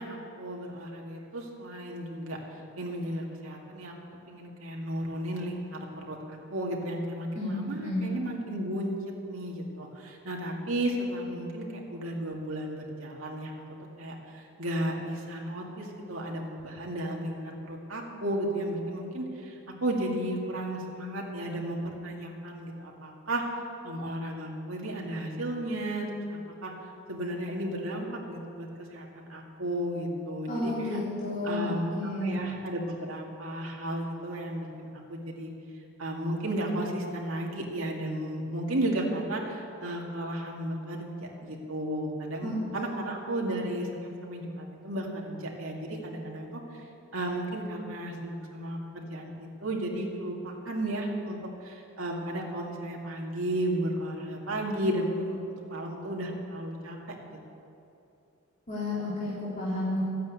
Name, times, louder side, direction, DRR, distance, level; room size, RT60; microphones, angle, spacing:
voice 1, 0.0-2.4 2.8-3.9 4.3-8.9 9.3-13.5 14.0-23.4 23.8-26.7 27.1-31.0 31.4-31.9 32.2-34.7 34.9-35.5 36.0-46.8 47.1-55.4 55.7-57.0 57.2-57.4, right 1 dB, 75° right, -1 dB, 2.3 m, -34 dB
voice 2, 7.4-8.0 30.5-32.4 42.4-42.6 58.7-60.0, left 1 dB, 35° left, -9 dB, 3.8 m, -31 dB
13.5 x 9.3 x 8.5 m, 2.7 s
head